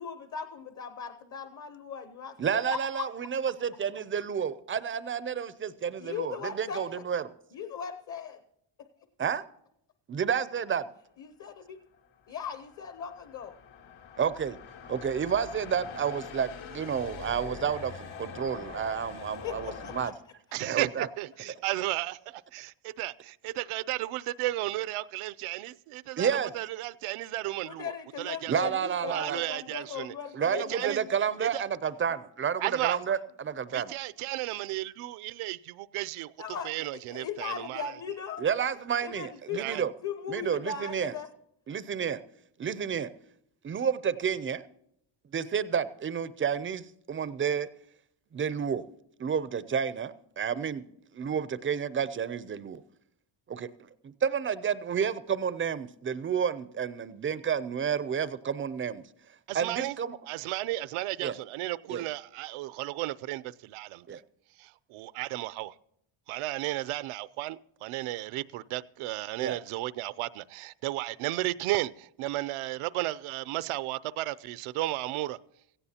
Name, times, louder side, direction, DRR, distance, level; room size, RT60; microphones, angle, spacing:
voice 1, 0.0-2.4 2.7-3.0 6.0-7.0 7.5-8.4 8.8-8.9 11.2-11.8 12.3-13.6 19.4-20.1 27.6-31.1 36.4-38.5 39.0-41.3, left 7 dB, 35° left, 0.8 m, -38 dB
voice 2, 2.4-7.3 9.2-9.4 10.1-10.9 14.2-14.6 14.9-20.1 20.6-21.1 26.2-26.5 28.5-29.4 30.3-33.9 38.4-39.9 40.3-41.1 41.7-42.2 42.6-43.1 43.6-44.6 45.3-47.7 48.3-48.8 49.2-50.8 51.1-52.8 53.5-53.7 54.0-59.0 59.5-60.2 61.2-61.3 61.9-62.0 64.1-64.2 69.4-69.6, right 7 dB, 25° right, 0.4 m, -30 dB
sound 1, 12.1-20.1, left 6 dB, 80° left, 2.3 m, -44 dB
voice 3, 20.5-27.9 28.2-28.5 29.1-30.1 30.5-31.0 31.4-31.6 32.6-33.0 33.7-36.3 36.6-37.9 39.5-39.8 59.5-60.0 60.3-64.2 64.6-65.7 66.3-75.4, right 17 dB, 85° right, 0.6 m, -34 dB
17.0 x 15.5 x 2.8 m
cardioid pair, 150°, 49 cm